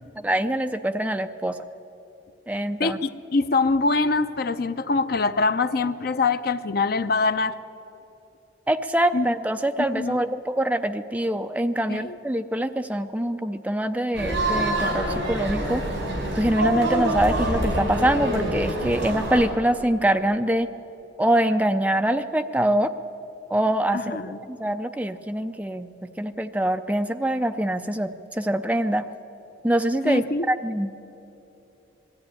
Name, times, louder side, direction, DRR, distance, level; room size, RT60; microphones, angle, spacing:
voice 1, 0.2-1.6 2.5-3.0 8.7-15.8 16.4-20.7 21.2-22.9 23.5-24.2 24.5-29.1 29.6-30.9, right 1 dB, 10° right, 8 dB, 0.5 m, -24 dB
voice 2, 2.8-7.6 9.1-9.3 9.9-10.2 11.9-12.2 23.9-24.4 30.0-30.5, left 3 dB, 50° left, 12 dB, 0.6 m, -24 dB
sound 1, 14.1-19.4, right 1 dB, 70° right, 4.8 m, -26 dB
21.0 x 13.5 x 10.0 m, 2.9 s
head